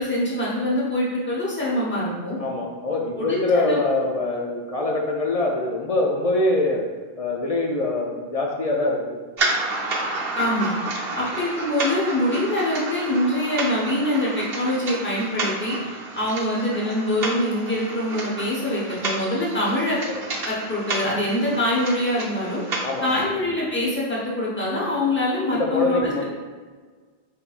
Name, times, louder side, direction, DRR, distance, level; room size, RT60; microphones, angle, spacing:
voice 1, 0.0-2.4 3.2-3.8 10.4-10.7 11.1-20.0 20.5-22.6 23.0-26.2, left 1 dB, 10° left, -6 dB, 1.0 m, -24 dB
voice 2, 2.4-6.8 7.2-9.1 20.1-20.2 22.8-23.3 25.5-26.2, left 2 dB, 45° left, -1 dB, 0.5 m, -24 dB
sound 1, 9.4-23.2, right 2 dB, 75° right, 0.9 m, -31 dB
5.3 x 3.4 x 2.4 m, 1.4 s
omnidirectional pair, 1.0 m